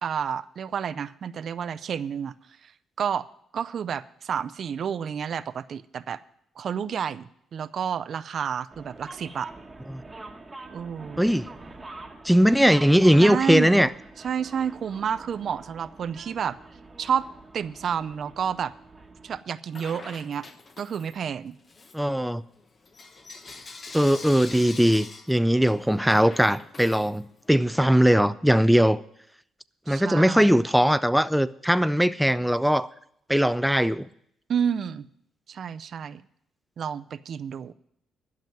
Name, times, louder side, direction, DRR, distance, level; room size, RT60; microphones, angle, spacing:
voice 1, 0.0-2.3 2.6-2.7 3.0-3.3 3.5-6.2 6.6-9.5 10.7-11.2 13.2-13.8 14.2-16.6 17.0-17.3 17.5-18.7 19.2-20.5 20.8-21.6 29.9-30.5 34.5-35.1 35.5-36.2 36.8-37.7, right 7 dB, 55° right, 0.5 m, -30 dB
sound 1, 8.7-19.4, right 2 dB, 15° right, 1.3 m, -45 dB
voice 2, 12.2-13.9 21.9-22.4 23.9-29.0 29.9-32.9 33.3-34.1, equal, ahead, 0.4 m, -20 dB
Bell / Coin (dropping), 19.7-21.3 21.6-27.6, left 3 dB, 35° left, 1.1 m, -44 dB
12.0 x 6.0 x 9.2 m
cardioid pair, 90°, 0 cm